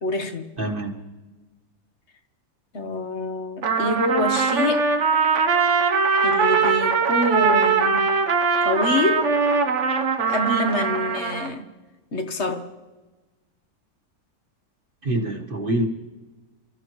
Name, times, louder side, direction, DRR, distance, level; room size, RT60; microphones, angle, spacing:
voice 1, 0.0-0.5 2.7-4.9 6.2-8.1 8.6-9.4 10.3-11.6 12.1-12.7, left 2 dB, 50° left, 1.2 m, -26 dB
voice 2, 0.6-0.9 15.0-15.9, right 1 dB, 35° right, 1.6 m, -25 dB
Trumpet, 3.6-11.5, right 5 dB, 55° right, 1.2 m, -21 dB
29.0 x 13.5 x 3.1 m
omnidirectional pair, 1.6 m